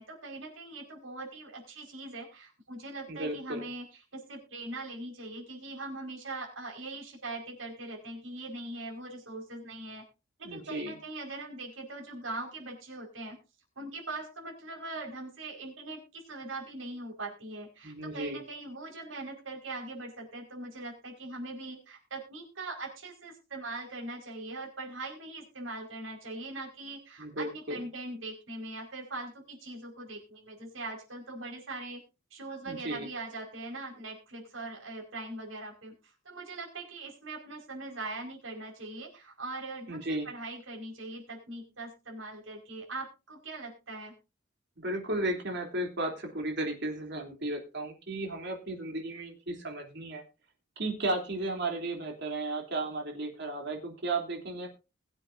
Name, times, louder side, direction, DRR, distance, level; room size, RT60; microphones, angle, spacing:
voice 1, 0.0-3.9 4.1-10.1 10.4-13.4 13.8-32.0 32.3-36.0 36.3-44.1, right 2 dB, 85° right, 0 dB, 5.2 m, -41 dB
voice 2, 3.1-3.7 10.4-10.9 17.8-18.4 27.2-27.8 32.6-33.1 39.9-40.3 44.8-50.2 50.8-54.7, right 2 dB, 60° right, 2 dB, 3.3 m, -34 dB
21.5 x 8.0 x 2.7 m, 0.29 s
head